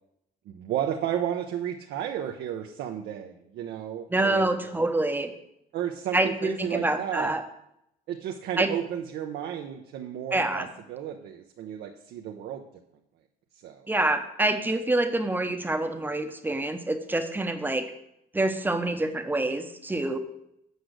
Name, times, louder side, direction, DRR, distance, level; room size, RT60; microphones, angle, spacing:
voice 1, 0.5-4.6 5.7-7.3 8.1-12.6 13.6-13.9, right 10 dB, 75° right, 3 dB, 0.8 m, -33 dB
voice 2, 4.1-5.3 6.1-7.4 8.6-8.7 10.3-10.7 13.9-17.8 18.3-20.2, right 2 dB, 10° right, 7 dB, 0.8 m, -26 dB
8.1 x 5.1 x 6.4 m, 0.79 s
cardioid pair, 110°, 17 cm